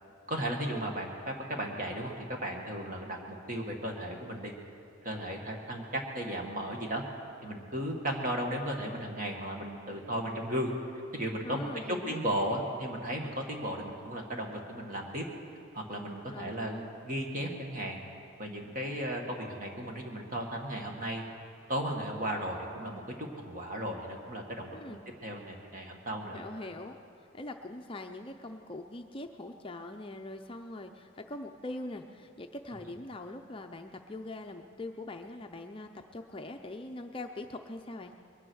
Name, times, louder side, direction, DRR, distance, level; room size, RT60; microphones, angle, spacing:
voice 1, 0.3-4.5 5.0-7.0 7.4-10.7 11.1-15.2 15.7-16.8 17.0-18.0 18.4-21.2 21.7-26.7, right 1 dB, 40° right, 1 dB, 1.8 m, -35 dB
voice 2, 11.4-12.2 16.3-16.9 24.7-25.0 26.3-27.0 27.3-38.1, left 2 dB, 25° left, 4 dB, 0.5 m, -42 dB
22.0 x 9.9 x 6.3 m, 2.5 s
head